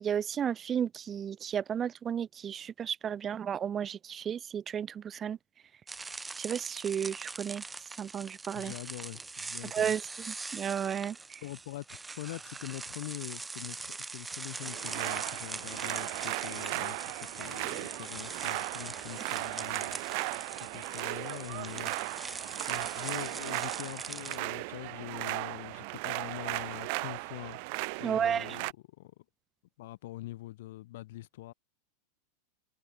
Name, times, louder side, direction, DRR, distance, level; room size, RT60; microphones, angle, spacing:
voice 1, 0.0-5.4 6.4-7.6 8.0-8.7 9.7-10.0 10.3-11.4 28.0-28.6, right 8 dB, 25° right, 0.4 m, -33 dB
sound 1, 5.9-24.4, right 3 dB, 10° right, 2.1 m, -42 dB
voice 2, 8.5-9.9 11.4-19.9 20.6-27.6 28.0-28.7 29.0-29.2 29.8-31.5, left 17 dB, 70° left, 2.2 m, -44 dB
sound 2, 14.6-28.7, right 33 dB, 60° right, 0.8 m, -37 dB
hypercardioid pair, 120°, 0 cm